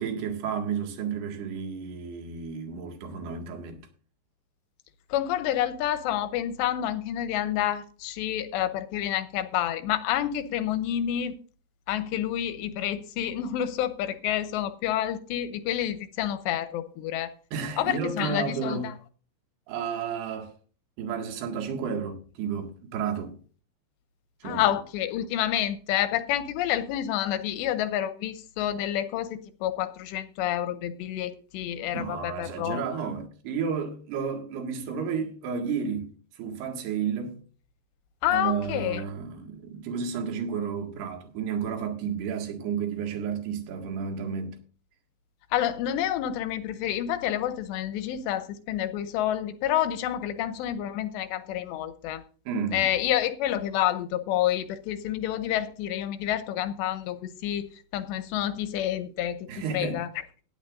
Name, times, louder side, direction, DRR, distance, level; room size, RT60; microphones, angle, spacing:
voice 1, 0.0-3.8 17.5-18.9 19.7-20.5 21.0-23.4 24.4-24.6 31.9-37.4 38.3-44.6 52.5-52.9 59.5-60.0, right 6 dB, 65° right, 3.6 m, -32 dB
voice 2, 5.1-11.4 11.9-17.3 17.8-18.9 24.4-32.8 38.2-39.0 45.5-52.2 52.7-59.5 59.7-60.1, left 11 dB, 80° left, 2.7 m, -28 dB
17.5 x 11.0 x 2.6 m
omnidirectional pair, 5.5 m